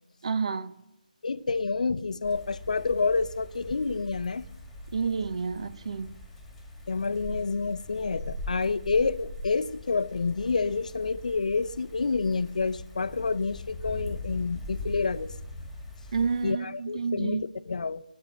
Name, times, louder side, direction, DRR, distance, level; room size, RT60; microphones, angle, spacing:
voice 1, 0.2-0.7 4.9-6.1 16.1-17.4, right 5 dB, 45° right, 1.0 m, -29 dB
voice 2, 1.2-4.4 6.9-15.3 16.4-18.0, left 4 dB, 55° left, 0.8 m, -28 dB
sound 1, 2.2-16.5, left 1 dB, 5° left, 2.2 m, -41 dB
19.5 x 9.2 x 6.4 m
figure-of-eight pair, 155°, 5 cm